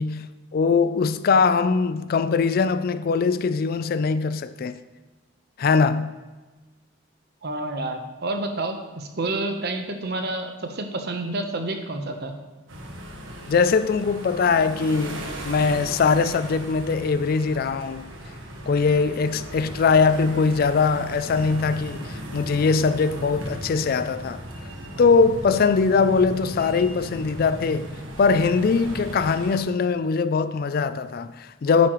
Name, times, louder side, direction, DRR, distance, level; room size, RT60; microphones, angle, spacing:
voice 1, 0.0-4.8 5.6-6.2 13.5-18.1 18.7-24.4 25.0-31.9, left 5 dB, 45° left, 0.3 m, -21 dB
voice 2, 7.4-12.3, right 2 dB, 50° right, 0.9 m, -29 dB
sound 1, 12.7-29.6, equal, 75° right, 1.5 m, -37 dB
9.4 x 8.5 x 3.1 m
head